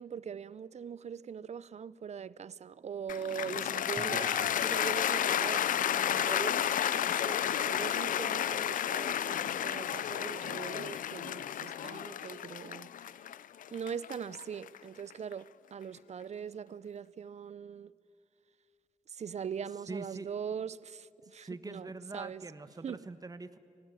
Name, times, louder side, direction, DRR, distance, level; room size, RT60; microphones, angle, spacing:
voice 1, 0.0-12.9 13.7-17.9 19.1-22.4 22.8-23.0, right 7 dB, 55° right, 0.6 m, -41 dB
Cheering / Applause, 3.1-15.3, left 10 dB, 75° left, 0.6 m, -32 dB
voice 2, 4.0-4.5 19.9-20.3 21.4-23.6, right 3 dB, 25° right, 1.4 m, -43 dB
23.5 x 18.0 x 9.4 m
cardioid pair, 60°, 14 cm